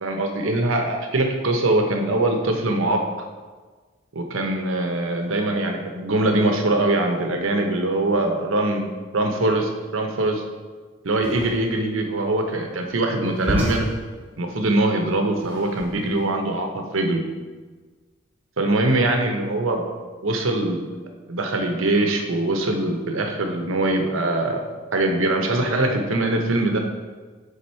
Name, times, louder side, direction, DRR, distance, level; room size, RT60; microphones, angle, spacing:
voice 1, 0.0-3.0 4.1-10.4 11.0-13.9 14.4-17.2 18.6-19.8 20.2-20.9 21.3-24.6 24.9-26.8, right 2 dB, 80° right, 4 dB, 0.8 m, -22 dB
sound 1, 11.1-16.3, equal, 10° right, 1.3 m, -31 dB
7.1 x 3.6 x 4.3 m, 1.4 s
head